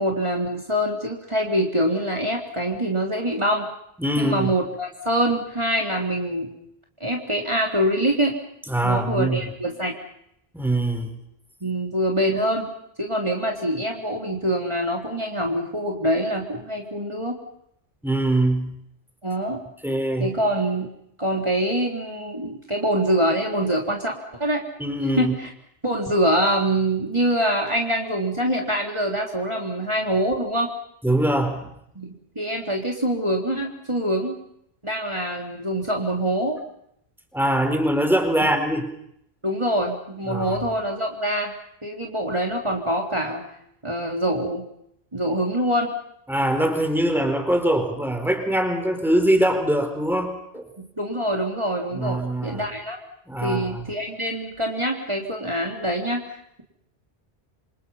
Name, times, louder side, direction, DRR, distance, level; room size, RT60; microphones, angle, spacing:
voice 1, 0.0-3.7 4.2-6.5 7.0-8.4 8.8-10.0 11.6-12.7 13.0-17.4 19.2-19.6 20.2-20.9 21.2-24.6 25.2-25.5 25.8-30.7 32.0-32.1 32.4-34.4 34.8-36.6 38.4-38.5 39.4-41.5 41.8-43.4 43.8-44.7 45.1-45.9 51.0-53.0 53.4-56.6, right 1 dB, 30° right, 0 dB, 3.6 m, -24 dB
voice 2, 4.0-4.5 8.7-9.4 10.5-11.1 18.0-18.8 19.8-20.3 24.8-25.3 31.0-31.7 37.3-38.9 40.3-40.6 46.3-50.6 51.9-52.6 53.3-53.9, right 1 dB, ahead, 5 dB, 4.4 m, -23 dB
27.5 x 27.5 x 5.7 m, 0.74 s
omnidirectional pair, 1.0 m